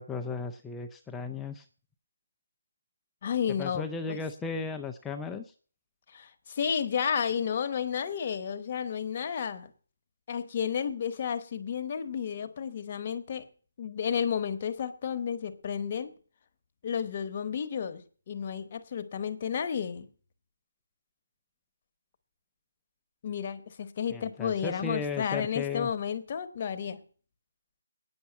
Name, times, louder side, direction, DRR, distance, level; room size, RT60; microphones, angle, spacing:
voice 1, 0.0-1.6 3.6-5.5 24.1-25.9, left 5 dB, 5° left, 0.5 m, -35 dB
voice 2, 3.2-4.2 6.1-9.7 10.3-13.5 13.8-16.1 16.8-20.1 23.2-27.0, left 7 dB, 35° left, 1.1 m, -32 dB
9.5 x 7.0 x 8.9 m
hypercardioid pair, 170°, 0 cm